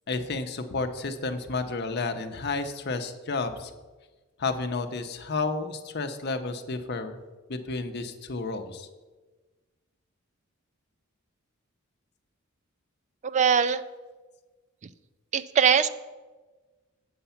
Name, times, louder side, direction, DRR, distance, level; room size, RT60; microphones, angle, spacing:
voice 1, 0.1-3.7 4.4-7.2 7.5-8.9, left 3 dB, 50° left, 7 dB, 0.7 m, -31 dB
voice 2, 13.3-13.8 15.3-15.9, right 7 dB, 35° right, 12 dB, 0.3 m, -21 dB
7.9 x 6.9 x 5.7 m, 1.3 s
head